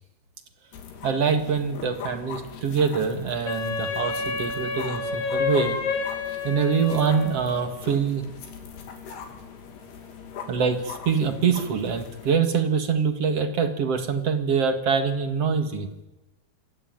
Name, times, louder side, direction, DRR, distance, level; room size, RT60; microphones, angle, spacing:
sound 1, 0.7-12.4, left 7 dB, 80° left, 4.9 m, -41 dB
voice 1, 1.0-5.8 6.4-8.2 10.5-15.9, right 6 dB, 45° right, 7 dB, 2.3 m, -24 dB
Wind instrument woodwind instrument, 3.5-7.6, left 4 dB, 65° left, 4.2 m, -29 dB
26.5 x 20.0 x 9.3 m, 1.0 s
omnidirectional pair, 4.6 m